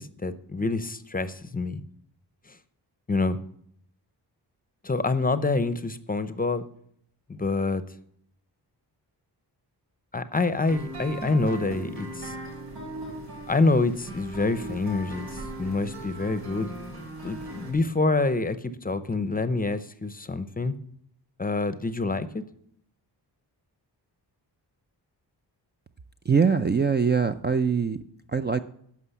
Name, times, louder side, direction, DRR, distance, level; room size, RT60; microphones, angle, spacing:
voice 1, 0.0-1.8 3.1-3.4 4.8-6.7 7.3-7.8 10.1-12.4 13.5-16.7 17.2-20.7 21.4-22.4, left 3 dB, 20° left, 12 dB, 0.6 m, -26 dB
sound 1, 10.7-17.7, right 1 dB, 90° right, 6.4 m, -39 dB
voice 2, 26.2-28.0 28.3-28.6, right 6 dB, 25° right, 8 dB, 0.4 m, -23 dB
11.5 x 6.0 x 8.2 m, 0.68 s
wide cardioid pair, 110°, 42 cm